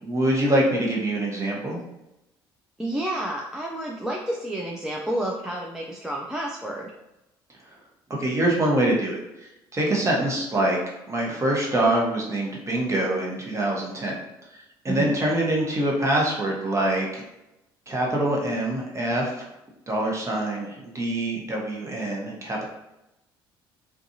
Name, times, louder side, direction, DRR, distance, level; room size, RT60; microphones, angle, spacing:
voice 1, 0.0-1.8 8.1-9.2 9.7-10.8 11.1-14.2 14.8-17.2 17.9-19.5 19.9-22.6, right 1 dB, 25° right, -2 dB, 1.0 m, -24 dB
voice 2, 2.8-6.9 14.9-15.1, right 1 dB, 5° right, -3 dB, 0.4 m, -30 dB
2.5 x 2.3 x 2.7 m, 0.91 s
figure-of-eight pair, 55°, 12 cm